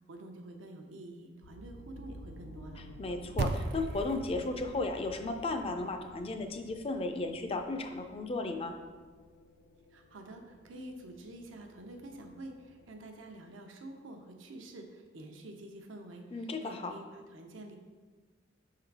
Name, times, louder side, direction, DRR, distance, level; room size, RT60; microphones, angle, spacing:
voice 1, 0.1-2.8 9.9-17.8, right 1 dB, 80° right, 3 dB, 0.7 m, -48 dB
sound 1, 1.4-13.4, equal, 85° left, 0.4 m, -53 dB
voice 2, 3.0-8.8 16.3-16.9, left 2 dB, 30° left, 6 dB, 0.4 m, -35 dB
sound 2, 3.4-7.9, right 3 dB, 55° right, 0.3 m, -39 dB
5.8 x 3.8 x 4.6 m, 1.4 s
head